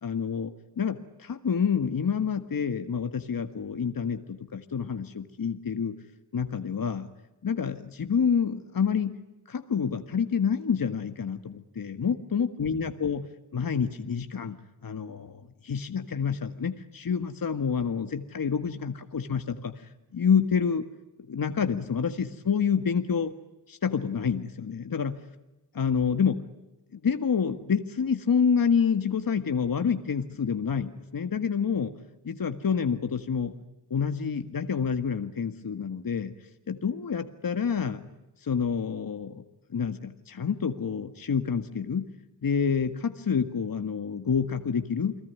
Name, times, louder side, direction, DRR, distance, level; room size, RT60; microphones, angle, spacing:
voice 1, 0.0-6.0 6.3-7.1 7.4-9.1 9.5-13.3 13.5-14.6 14.8-19.7 20.1-20.9 21.3-23.3 23.7-25.2 25.7-26.4 26.9-31.9 32.2-33.5 33.9-36.3 36.7-38.0 38.4-39.4 39.7-42.1 42.4-45.2, left 6 dB, 55° left, 8 dB, 1.8 m, -28 dB
30.0 x 20.5 x 9.6 m, 0.97 s
cardioid pair, 75°, 40 cm